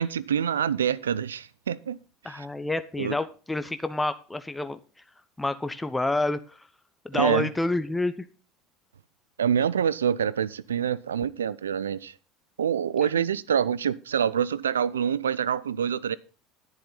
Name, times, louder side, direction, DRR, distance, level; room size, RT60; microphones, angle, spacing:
voice 1, 0.0-2.0 2.2-2.5 3.0-3.1 7.1-7.5 9.4-12.1 12.6-16.2, right 8 dB, 85° right, 0.4 m, -26 dB
voice 2, 2.2-4.8 5.4-6.6 7.0-8.3 13.2-13.3, left 2 dB, 10° left, 0.9 m, -28 dB
10.5 x 10.5 x 4.0 m
hypercardioid pair, 70°, 0 cm